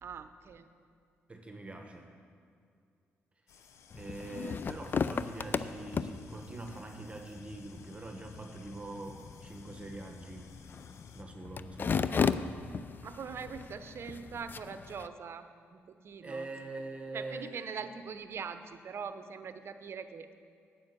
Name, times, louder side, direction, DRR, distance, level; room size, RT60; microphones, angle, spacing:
voice 1, 0.0-0.7 13.0-15.5 15.7-16.5 17.1-20.3, right 6 dB, 55° right, 10 dB, 0.7 m, -42 dB
voice 2, 1.3-2.1 3.9-10.6 11.1-12.5 16.2-17.5, right 2 dB, 25° right, 3 dB, 1.3 m, -43 dB
sound 1, 3.5-11.2, left 6 dB, 75° left, 0.7 m, -60 dB
sound 2, 3.9-15.1, left 6 dB, 45° left, 0.4 m, -36 dB
9.6 x 7.7 x 6.7 m, 2.3 s
cardioid pair, 75°, 5 cm